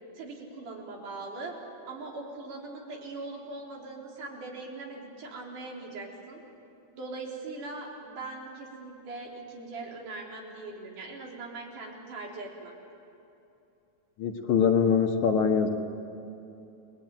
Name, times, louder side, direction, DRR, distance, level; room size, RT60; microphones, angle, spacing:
voice 1, 0.2-1.6 1.9-6.4 6.9-12.7, right 3 dB, 80° right, -1 dB, 5.2 m, -41 dB
voice 2, 14.2-15.7, left 6 dB, 70° left, 3 dB, 3.0 m, -23 dB
29.5 x 20.5 x 9.1 m, 2.8 s
omnidirectional pair, 3.6 m